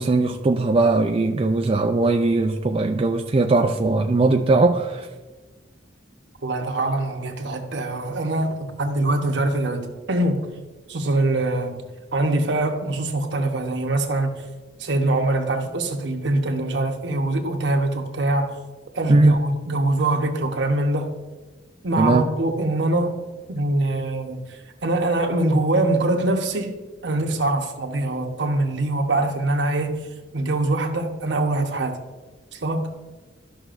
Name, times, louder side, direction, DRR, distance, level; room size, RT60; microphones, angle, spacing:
voice 1, 0.0-5.1 19.1-19.4 22.0-22.2, right 3 dB, 30° right, 0.4 m, -19 dB
voice 2, 6.4-10.4 10.9-11.8 12.1-14.3 14.8-18.6 18.9-21.1 21.8-23.2 23.5-26.8 27.0-30.0 30.3-32.0 32.5-32.9, right 2 dB, 65° right, 1.0 m, -23 dB
13.0 x 5.9 x 2.5 m
head